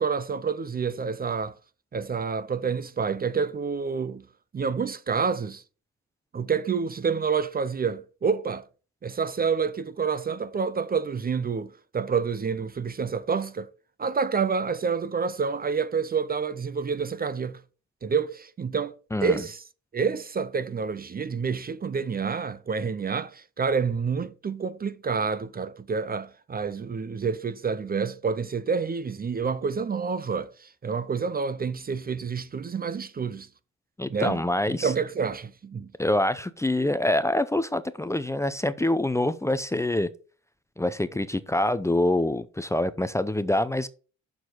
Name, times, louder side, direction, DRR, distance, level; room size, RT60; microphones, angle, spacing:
voice 1, 0.0-1.6 1.9-4.2 4.5-5.6 6.3-8.6 9.0-13.7 14.0-17.6 18.0-18.9 19.2-19.6 19.9-33.5 34.1-35.9, right 5 dB, 30° right, 0.6 m, -28 dB
voice 2, 34.0-34.9 36.0-40.1 40.8-43.9, left 1 dB, 10° left, 0.6 m, -25 dB
7.2 x 6.2 x 4.5 m
cardioid pair, 90°, 30 cm